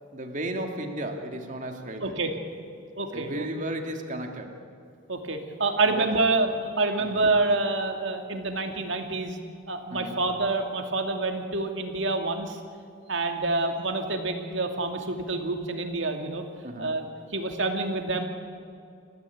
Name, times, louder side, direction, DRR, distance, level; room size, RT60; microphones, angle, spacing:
voice 1, 0.1-2.2 3.1-4.5 5.9-6.1 7.1-7.2 9.9-10.2 16.6-16.9, right 1 dB, 40° right, 3 dB, 2.6 m, -34 dB
voice 2, 2.0-2.3 3.0-3.5 5.1-6.5 6.8-9.4 9.7-12.6 13.1-16.4 16.8-18.3, right 3 dB, 65° right, 4 dB, 2.6 m, -27 dB
30.0 x 15.0 x 8.6 m, 2.5 s
head